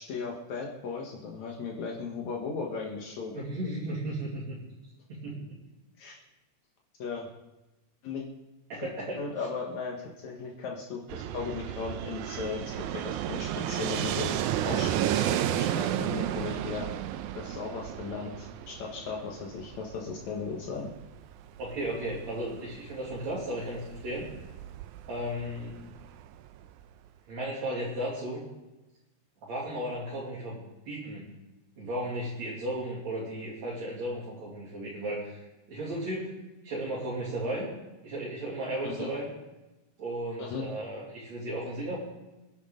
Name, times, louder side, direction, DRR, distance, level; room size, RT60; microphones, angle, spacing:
voice 1, 0.0-3.4 6.0-6.2 7.0-7.3 8.0-8.2 8.8-8.9 9.2-14.3 14.6-16.9 17.4-20.9 38.8-39.1 40.4-40.6, left 5 dB, 70° left, 0 dB, 2.7 m, -37 dB
voice 2, 3.3-4.6 5.1-5.6 8.7-9.2 21.6-24.3 25.1-25.8 27.3-28.4 29.5-31.3 31.8-35.4 35.7-36.4 36.6-37.7 38.0-39.3 40.0-42.0, right 1 dB, 65° right, -7 dB, 3.9 m, -35 dB
Fixed-wing aircraft airplane, 11.1-26.8, right 11 dB, 90° right, 2.1 m, -33 dB
24.5 x 10.5 x 3.8 m, 1.0 s
omnidirectional pair, 3.4 m